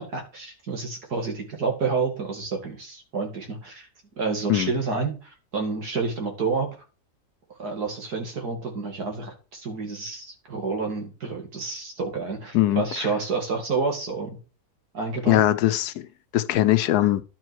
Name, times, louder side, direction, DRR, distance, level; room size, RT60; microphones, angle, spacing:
voice 1, 0.0-3.8 4.2-6.7 7.6-14.4 14.9-15.4, right 4 dB, 85° right, 2.7 m, -29 dB
voice 2, 12.5-13.1 15.3-16.1 16.3-17.2, left 14 dB, 85° left, 1.2 m, -21 dB
11.5 x 4.6 x 4.7 m
omnidirectional pair, 1.6 m